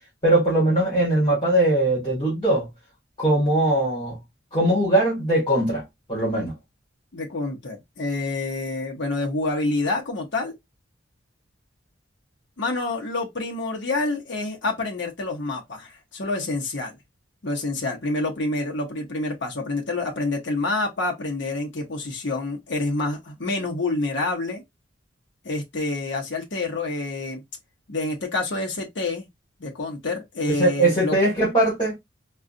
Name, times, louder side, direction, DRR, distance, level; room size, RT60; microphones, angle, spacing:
voice 1, 0.2-2.7 3.2-4.2 4.5-5.8 6.1-6.5 30.6-31.9, right 1 dB, 25° left, 1.9 m, -20 dB
voice 2, 7.1-10.5 12.6-16.9 17.4-24.6 25.4-27.4 27.9-29.3 29.6-31.2, left 2 dB, 65° left, 0.8 m, -27 dB
3.7 x 2.4 x 2.5 m
head